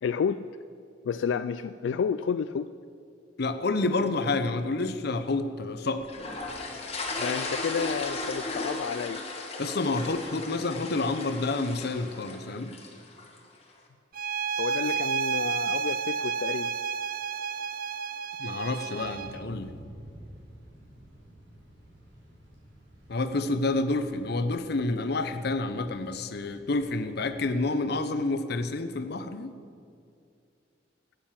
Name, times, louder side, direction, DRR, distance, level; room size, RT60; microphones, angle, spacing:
voice 1, 0.0-0.5 1.0-2.7 7.2-9.2 14.6-16.7, left 6 dB, 90° left, 12 dB, 0.3 m, -30 dB
voice 2, 3.4-6.1 9.6-12.7 18.4-19.7 23.1-29.5, left 2 dB, 60° left, 10 dB, 0.8 m, -29 dB
sound 1, 6.1-13.4, left 2 dB, 35° left, 1.5 m, -36 dB
sound 2, 14.1-19.4, right 6 dB, 50° right, 0.4 m, -31 dB
Thunder / Rain, 19.0-27.4, equal, 80° right, 4.1 m, -52 dB
13.0 x 9.3 x 7.4 m, 2.4 s
head